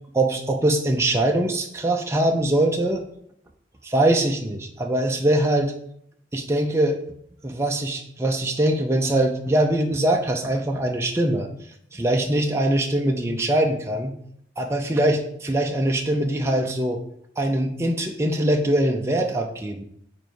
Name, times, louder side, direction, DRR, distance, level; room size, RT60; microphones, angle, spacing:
voice 1, 0.1-3.0 3.8-5.7 6.3-7.0 7.4-11.5 11.9-14.2 14.6-17.0 17.4-19.8, right 1 dB, 15° right, 1 dB, 0.6 m, -22 dB
7.5 x 4.5 x 4.7 m, 0.69 s
head